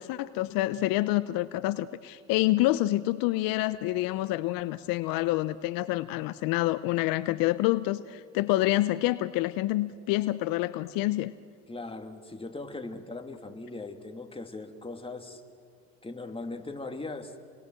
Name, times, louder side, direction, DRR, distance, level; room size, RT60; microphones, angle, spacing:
voice 1, 0.0-11.3, left 17 dB, 70° left, 15 dB, 0.7 m, -27 dB
voice 2, 11.7-15.4 16.0-17.4, left 2 dB, 15° left, 5 dB, 2.6 m, -39 dB
28.0 x 21.0 x 7.6 m, 2.2 s
hypercardioid pair, 70°, 36 cm